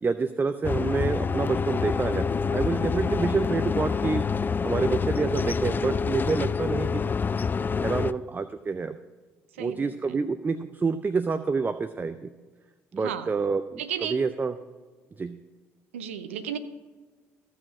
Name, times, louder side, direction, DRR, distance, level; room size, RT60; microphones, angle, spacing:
voice 1, 0.0-4.2 4.6-7.1 7.8-8.9 9.6-12.3 12.9-13.8 14.1-14.5 15.2-15.4, right 4 dB, 30° right, 11 dB, 0.6 m, -27 dB
sound 1, 0.6-8.1, left 5 dB, 30° left, 0.4 m, -27 dB
voice 2, 9.5-10.2 13.0-13.3 13.8-14.2 15.9-16.6, right 9 dB, 90° right, 10 dB, 0.7 m, -34 dB
14.5 x 6.5 x 6.0 m, 1.3 s
hypercardioid pair, 55°, 7 cm